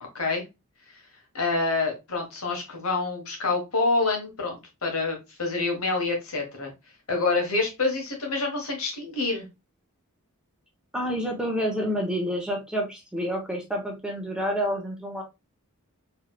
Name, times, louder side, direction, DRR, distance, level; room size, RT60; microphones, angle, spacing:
voice 1, 1.3-6.7 7.1-9.4, left 3 dB, 70° left, 2 dB, 1.5 m, -27 dB
voice 2, 10.9-15.2, equal, 5° right, 0 dB, 1.0 m, -28 dB
4.5 x 3.5 x 2.4 m, 0.24 s
head